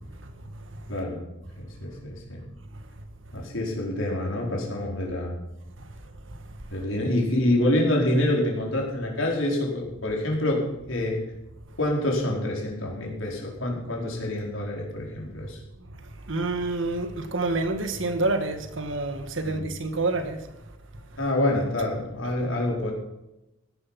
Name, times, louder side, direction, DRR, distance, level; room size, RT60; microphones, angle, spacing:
voice 1, 0.9-1.2 1.6-2.4 3.3-5.4 6.7-11.2 11.8-15.6 19.4-19.7 21.2-22.9, left 1 dB, 80° left, 4.8 m, -27 dB
voice 2, 16.3-20.4, right 2 dB, 75° right, 1.7 m, -27 dB
16.0 x 11.0 x 6.0 m
head